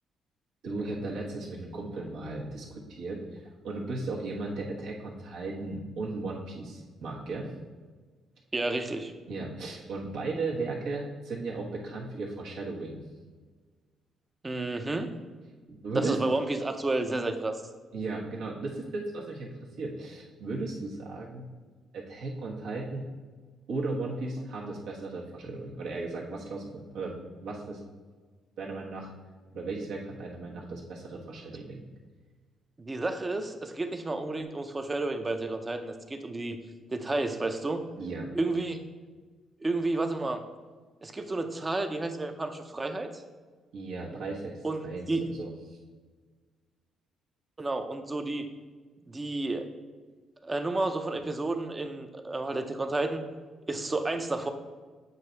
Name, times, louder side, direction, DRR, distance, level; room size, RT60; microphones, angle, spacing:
voice 1, 0.6-7.5 9.3-13.0 15.7-16.2 17.9-21.5 21.9-23.1 23.7-27.8 28.6-29.1 29.5-31.8 38.0-38.3 43.7-45.8, right 3 dB, 80° right, -3 dB, 1.3 m, -36 dB
voice 2, 8.5-9.1 14.4-15.1 16.0-17.6 32.8-36.6 36.9-37.8 38.3-38.8 39.6-40.4 41.0-43.2 44.6-45.2 47.6-48.5 49.1-49.7 50.4-53.2 53.7-54.5, right 2 dB, 25° right, 7 dB, 0.6 m, -31 dB
7.8 x 2.7 x 4.4 m, 1.4 s
cardioid pair, 90°, 0 cm